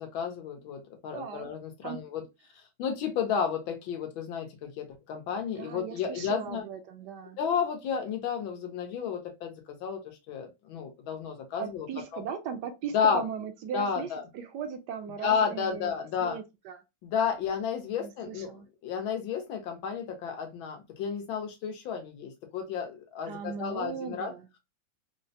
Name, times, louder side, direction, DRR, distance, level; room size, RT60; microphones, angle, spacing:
voice 1, 0.0-2.2 2.8-6.7 7.4-10.0 10.3-11.9 12.1-12.2 12.9-13.2 13.7-14.2 15.2-16.4 17.0-18.5 18.8-24.3, left 7 dB, 90° left, 1.7 m, -32 dB
voice 2, 1.1-1.5 1.8-2.0 5.6-7.4 11.6-15.9 16.2-16.8 17.9-18.7 23.3-24.6, right 7 dB, 75° right, 1.1 m, -38 dB
4.2 x 2.1 x 2.7 m
omnidirectional pair, 2.1 m